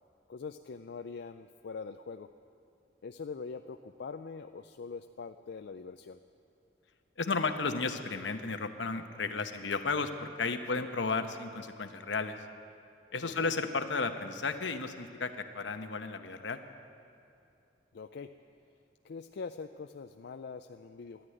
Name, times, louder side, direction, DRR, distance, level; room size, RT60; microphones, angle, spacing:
voice 1, 0.3-2.3 3.0-6.2 10.8-10.9 13.2-13.5 17.9-18.3 19.0-21.3, left 5 dB, 65° left, 7 dB, 0.4 m, -43 dB
voice 2, 7.2-12.4 13.1-16.6, left 4 dB, 80° left, 8 dB, 0.9 m, -33 dB
13.0 x 11.0 x 9.1 m, 2.6 s
head